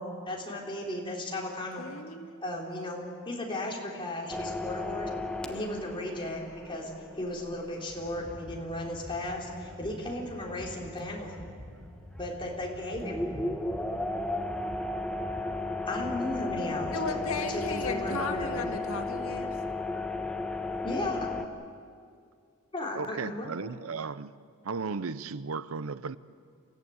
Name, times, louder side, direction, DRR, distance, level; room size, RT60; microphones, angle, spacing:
voice 1, 0.0-1.9 2.4-5.1 5.5-6.9 7.2-11.3 12.2-13.6 15.9-18.7 20.8-21.3 22.7-23.5, left 1 dB, 25° left, -2 dB, 3.9 m, -35 dB
voice 2, 1.8-2.4 5.4-5.5 16.9-19.6, left 3 dB, 90° left, 5 dB, 1.9 m, -35 dB
sound 1, 4.3-10.3 10.6-10.7 12.2-12.5 13.0-21.4, left 2 dB, 5° left, 1.0 m, -35 dB
sound 2, 7.9-18.7, equal, 15° right, 4.9 m, -47 dB
voice 3, 22.9-24.3 24.6-26.2, right 4 dB, 80° right, 16 dB, 0.6 m, -35 dB
28.5 x 15.0 x 8.8 m, 2.2 s
head